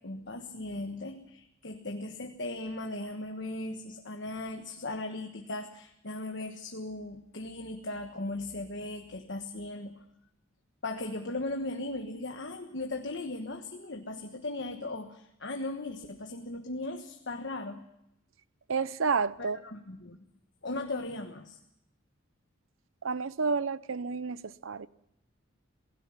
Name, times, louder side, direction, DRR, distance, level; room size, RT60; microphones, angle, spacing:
voice 1, 0.0-10.0 10.8-17.8 19.4-20.2 20.6-21.6, left 2 dB, 55° left, 1.3 m, -38 dB
voice 2, 18.7-19.6 23.0-24.9, right 5 dB, 75° right, 0.7 m, -30 dB
27.0 x 17.0 x 5.8 m
head